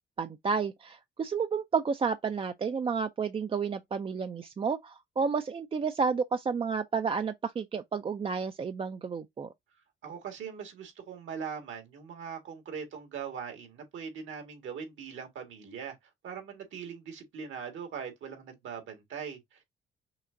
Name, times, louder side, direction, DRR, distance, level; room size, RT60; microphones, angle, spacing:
voice 1, 0.2-9.5, right 5 dB, 30° right, 0.3 m, -31 dB
voice 2, 10.0-16.0 16.2-19.6, right 7 dB, 75° right, 1.8 m, -41 dB
5.8 x 2.8 x 2.5 m
cardioid pair, 90°, 20 cm